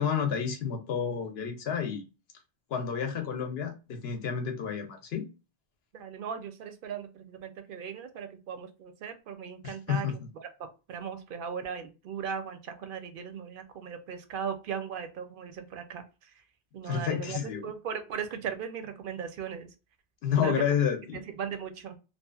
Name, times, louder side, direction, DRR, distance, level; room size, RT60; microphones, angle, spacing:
voice 1, 0.0-2.0 2.7-5.2 9.6-10.2 16.8-17.7 20.2-21.2, left 7 dB, 75° left, 0.9 m, -30 dB
voice 2, 5.9-10.1 10.4-10.5 10.9-16.0 16.7-19.7 20.4-20.5 21.1-22.0, right 7 dB, 65° right, 0.7 m, -38 dB
2.7 x 2.4 x 2.3 m
omnidirectional pair, 1.1 m